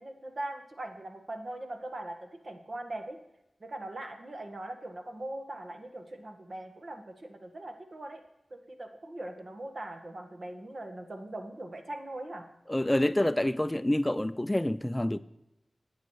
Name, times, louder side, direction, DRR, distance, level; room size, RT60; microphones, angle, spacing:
voice 1, 0.0-3.2 3.6-8.2 8.5-12.5, right 1 dB, 55° right, 1.6 m, -41 dB
voice 2, 12.7-15.2, left 1 dB, 15° left, 0.4 m, -27 dB
10.5 x 8.7 x 4.8 m
cardioid pair, 50°, 0 cm